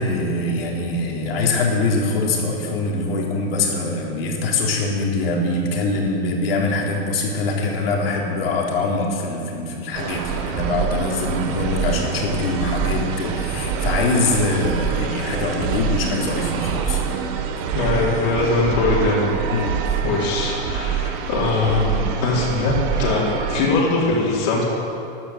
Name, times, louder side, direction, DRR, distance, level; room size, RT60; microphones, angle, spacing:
voice 1, 0.0-17.0 19.5-19.8, left 2 dB, 75° left, -1 dB, 3.9 m, -23 dB
sound 1, 9.9-23.7, right 7 dB, 40° right, 1.3 m, -25 dB
voice 2, 17.7-19.3 20.0-24.6, left 3 dB, 50° left, -5 dB, 4.2 m, -21 dB
14.0 x 12.0 x 7.8 m, 2.6 s
supercardioid pair, 150°, 30 cm